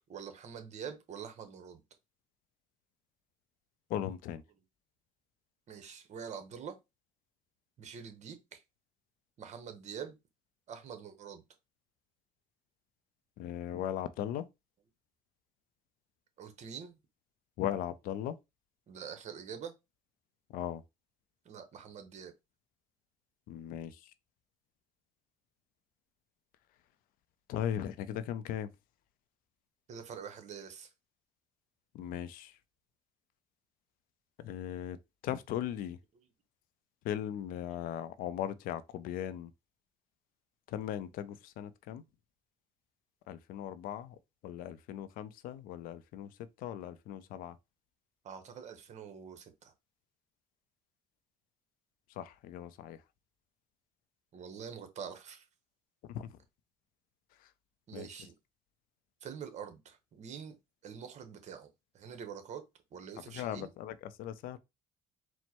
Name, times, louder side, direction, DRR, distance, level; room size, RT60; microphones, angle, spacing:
voice 1, 0.1-1.8 5.7-6.8 7.8-8.6 9.4-10.2 10.7-11.4 16.4-17.0 18.9-19.7 21.4-22.3 29.9-30.9 48.2-49.7 54.3-55.5 57.9-58.3 59.2-60.6 60.8-61.7 61.9-62.6 62.9-63.7, right 7 dB, 55° right, 1.0 m, -45 dB
voice 2, 3.9-4.4 13.4-14.5 17.6-18.4 20.5-20.8 23.5-24.1 27.5-28.7 31.9-32.6 34.4-35.0 35.2-36.0 37.0-39.5 40.7-42.0 43.3-44.2 44.4-46.3 46.6-47.6 52.2-53.0 56.0-56.3 57.4-57.5 57.9-58.1 63.3-64.6, left 10 dB, 75° left, 0.5 m, -38 dB
4.4 x 2.1 x 4.4 m
cardioid pair, 100°, 15 cm